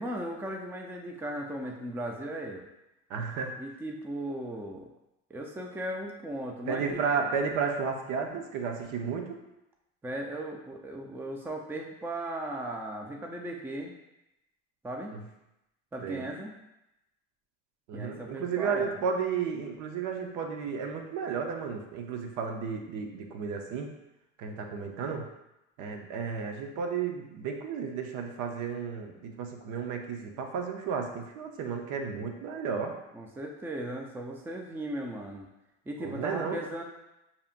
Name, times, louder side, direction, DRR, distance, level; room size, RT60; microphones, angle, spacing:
voice 1, 0.0-2.6 3.6-4.9 5.3-7.3 10.0-13.9 14.8-15.1 15.9-16.5 17.9-18.9 33.1-35.5 35.9-36.8, right 1 dB, 5° right, 1 dB, 0.4 m, -37 dB
voice 2, 3.1-3.5 6.7-9.4 15.1-15.2 16.0-16.2 17.9-23.9 24.4-25.3 25.8-32.9 36.0-36.6, right 6 dB, 65° right, 3 dB, 0.8 m, -33 dB
6.8 x 2.8 x 2.5 m, 0.91 s
supercardioid pair, 115°, 32 cm